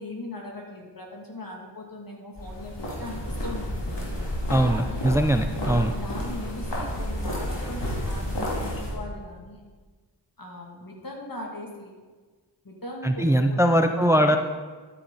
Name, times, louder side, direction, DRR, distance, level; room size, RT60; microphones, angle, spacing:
voice 1, 0.0-3.8 4.5-5.1 5.6-9.6 10.4-11.9 12.6-14.4, left 1 dB, 55° left, -1 dB, 2.6 m, -39 dB
sound 1, 2.4-8.9, equal, 80° left, 3.0 m, -30 dB
voice 2, 4.5-5.9 13.0-14.4, right 1 dB, 5° right, 6 dB, 0.6 m, -21 dB
12.5 x 9.7 x 4.1 m, 1.4 s
wide cardioid pair, 50°, 42 cm